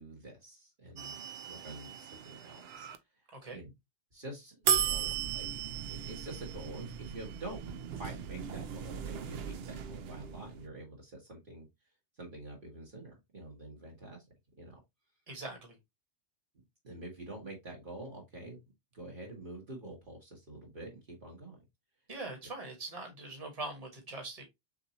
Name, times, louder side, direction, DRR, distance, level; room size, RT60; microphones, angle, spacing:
voice 1, 0.0-2.9 3.5-3.7 4.1-5.6 5.9-11.7 12.2-14.2 14.6-14.7 16.8-18.6 18.9-21.6, right 1 dB, 50° right, -1 dB, 1.7 m, -47 dB
sound 1, 1.0-3.0 4.7-10.7, right 8 dB, 65° right, 0.8 m, -36 dB
voice 2, 15.3-15.8 22.1-24.4, right 2 dB, 35° right, 1 dB, 1.7 m, -42 dB
6.7 x 2.7 x 2.8 m, 0.19 s
omnidirectional pair, 1.1 m